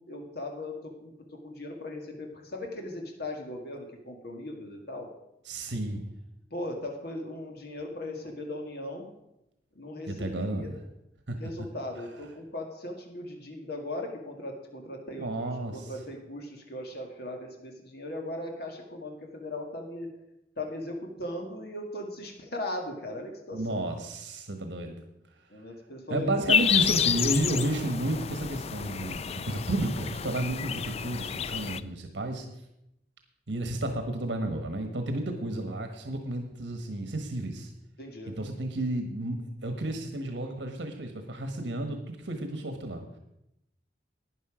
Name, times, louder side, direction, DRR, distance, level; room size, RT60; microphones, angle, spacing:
voice 1, 0.1-5.1 6.5-9.1 9.8-10.7 11.4-15.4 15.7-20.1 20.6-23.8 25.5-26.4 27.2-27.6 38.0-38.4 38.8-38.9, left 1 dB, 65° left, 2 dB, 2.0 m, -38 dB
voice 2, 5.5-6.0 10.1-10.8 11.3-11.4 15.2-15.9 23.5-25.0 26.1-32.4 33.5-37.7 38.3-43.2, right 1 dB, 80° right, 5 dB, 1.3 m, -32 dB
sound 1, 26.5-31.8, left 8 dB, 35° left, 0.4 m, -29 dB
12.0 x 9.7 x 5.0 m, 0.85 s
head